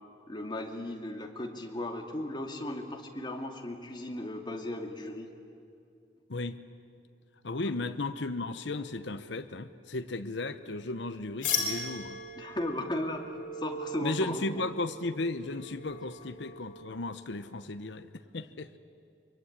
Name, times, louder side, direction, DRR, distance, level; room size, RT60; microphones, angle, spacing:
voice 1, 0.3-5.3 7.6-7.9 12.4-14.6, left 1 dB, 25° left, 2 dB, 2.4 m, -36 dB
voice 2, 7.4-12.2 14.0-18.8, left 2 dB, 65° left, 10 dB, 0.9 m, -35 dB
sound 1, 11.4-17.0, left 3 dB, 50° left, 4.8 m, -38 dB
24.0 x 23.5 x 10.0 m, 2.5 s
head